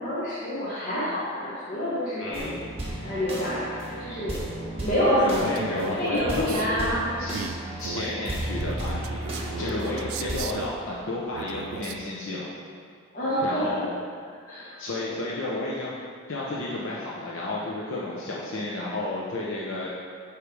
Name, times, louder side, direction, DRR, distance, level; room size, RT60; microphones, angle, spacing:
voice 1, 0.0-2.6 3.0-3.7 4.0-4.4 4.8-5.6 6.0-7.5 9.6-10.0 13.1-13.8 14.4-14.7 15.0-15.1, equal, 40° left, -11 dB, 1.2 m, -27 dB
voice 2, 2.2-2.6 5.2-6.9 7.2-7.4 7.8-12.5 13.4-14.0 14.8-15.9 16.3-19.9, left 2 dB, 70° left, -5 dB, 0.8 m, -32 dB
sound 1, 2.3-10.4, right 1 dB, 30° right, 1.3 m, -34 dB
Male speech man speaking, 5.3-6.7 7.3-10.8 11.3-12.0, right 7 dB, 85° right, 0.3 m, -37 dB
8.0 x 3.3 x 4.8 m, 2.1 s
head